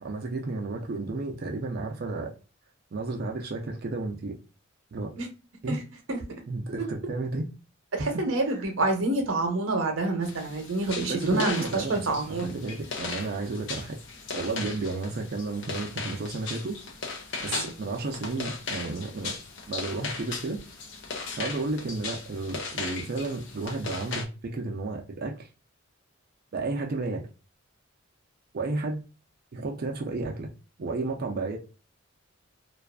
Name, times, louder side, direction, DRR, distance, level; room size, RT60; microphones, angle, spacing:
voice 1, 0.0-2.3 2.9-4.3 4.9-5.1 5.6-5.8 6.5-7.5 8.0-8.6 11.1-14.0 14.3-16.8 17.4-19.3 19.7-20.6 21.4-25.5 26.5-27.3 28.5-29.0 29.5-30.5 30.8-31.6, right 3 dB, 50° right, 0.4 m, -32 dB
voice 2, 8.0-12.5 14.6-14.7 17.4-17.7, right 2 dB, 80° right, 0.7 m, -27 dB
sound 1, 10.2-24.2, left 4 dB, 65° left, 0.5 m, -37 dB
2.5 x 2.3 x 2.2 m
head